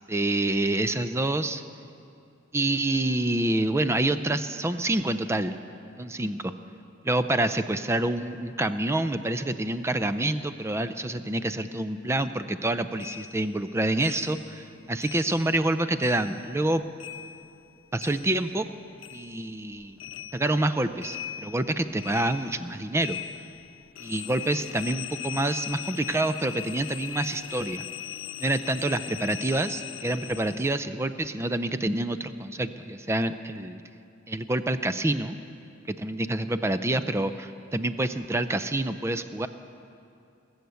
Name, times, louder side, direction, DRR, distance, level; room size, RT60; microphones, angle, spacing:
voice 1, 0.1-1.6 2.5-5.6 6.0-6.5 7.0-16.8 17.9-18.7 19.1-20.0 20.3-23.2 24.0-27.8 28.4-33.8 34.3-35.4 35.9-39.5, right 1 dB, 15° right, 11 dB, 0.4 m, -27 dB
sound 1, 13.0-15.7 16.0-18.7 19.0-30.8, left 10 dB, 85° left, 0.4 m, -40 dB
21.0 x 8.0 x 7.0 m, 2.6 s
head